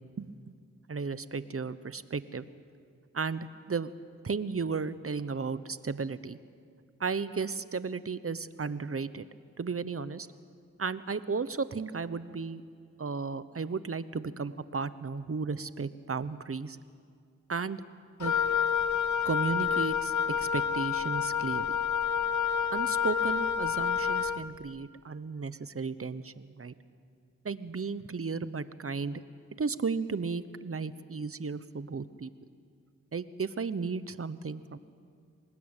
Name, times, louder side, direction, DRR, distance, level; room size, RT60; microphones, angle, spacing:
voice 1, 0.9-2.5 3.1-3.9 4.2-6.4 7.0-9.3 9.6-10.3 10.8-12.6 13.0-16.8 17.5-17.8 18.2-18.3 19.2-21.8 22.7-26.7 27.4-29.2 29.6-32.3 33.1-34.8, right 4 dB, 50° right, 14 dB, 1.0 m, -34 dB
Wind instrument woodwind instrument, 18.2-24.4, left 7 dB, 85° left, 0.8 m, -28 dB
25.0 x 20.0 x 9.0 m, 2.2 s
cardioid pair, 50°, 29 cm